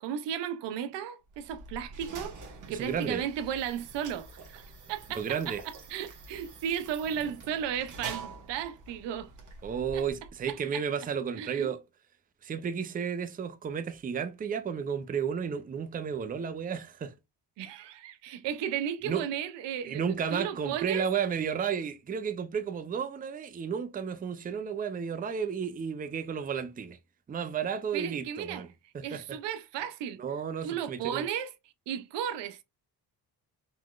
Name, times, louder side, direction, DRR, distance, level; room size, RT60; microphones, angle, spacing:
voice 1, 0.0-2.4 2.7-9.3 9.9-10.0 10.5-10.8 11.4-11.7 17.6-20.0 20.3-21.0 27.9-28.6 29.0-30.2 30.6-31.5 31.9-32.6, right 9 dB, 85° right, 0.6 m, -35 dB
sound 1, 1.3-10.6, right 3 dB, 45° right, 1.2 m, -46 dB
voice 2, 2.7-3.2 5.1-5.6 9.6-11.8 12.4-17.1 19.0-19.3 19.8-27.0 27.3-28.7 28.9-29.4 30.2-31.3, right 7 dB, 20° right, 0.4 m, -33 dB
3.9 x 3.1 x 2.3 m
cardioid pair, 120°, 41 cm